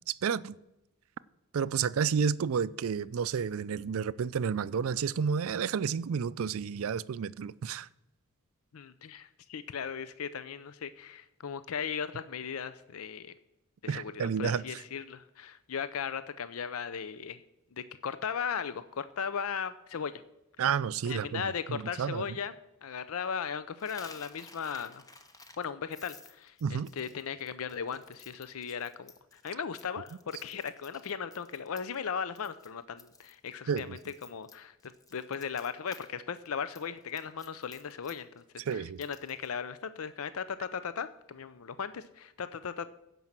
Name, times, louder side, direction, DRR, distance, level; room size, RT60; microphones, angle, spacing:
voice 1, 0.1-0.5 1.5-7.9 13.9-14.6 20.6-21.4 21.7-22.3 26.6-26.9 33.7-34.0 38.7-39.0, right 6 dB, 65° right, 0.4 m, -31 dB
voice 2, 8.7-13.3 13.8-17.4 17.7-20.2 21.0-25.0 25.6-42.9, left 7 dB, 65° left, 0.5 m, -37 dB
Coin (dropping), 23.8-32.1 32.4-32.7 33.0-36.1 36.4-39.5, left 3 dB, 15° left, 0.8 m, -54 dB
15.5 x 5.4 x 7.4 m
head